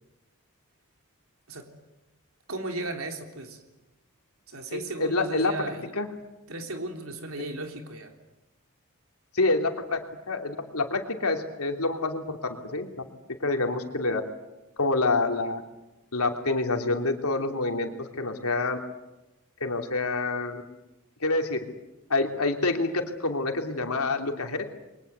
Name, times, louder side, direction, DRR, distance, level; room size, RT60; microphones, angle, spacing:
voice 1, 2.5-3.6 4.5-5.9 6.5-8.1, right 2 dB, 70° right, 4 dB, 3.5 m, -35 dB
voice 2, 4.7-5.5 5.9-6.1 9.3-14.2 14.8-15.6 16.1-18.8 19.6-20.6 21.2-21.6 22.1-22.9 23.2-24.6, left 3 dB, 85° left, 4 dB, 3.0 m, -27 dB
29.5 x 23.0 x 8.1 m, 1.0 s
head